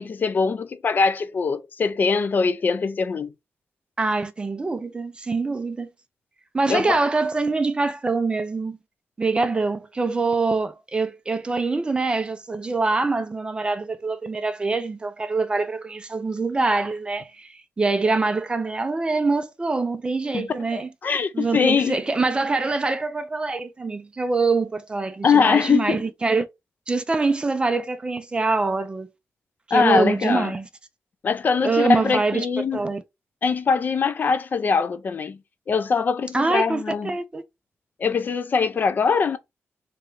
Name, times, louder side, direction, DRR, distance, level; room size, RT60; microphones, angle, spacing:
voice 1, 0.0-3.3 6.7-7.0 20.3-22.0 25.2-26.1 29.7-30.5 31.2-32.8 33.4-35.4 35.7-37.1 38.0-39.4, left 5 dB, 45° left, 0.5 m, -22 dB
voice 2, 4.0-5.9 6.5-8.8 9.2-20.9 21.3-26.5 26.9-29.1 29.7-30.7 31.6-32.5 32.7-33.0 36.3-37.4, right 3 dB, 20° right, 0.5 m, -24 dB
3.6 x 3.3 x 3.0 m
wide cardioid pair, 170°, 5 cm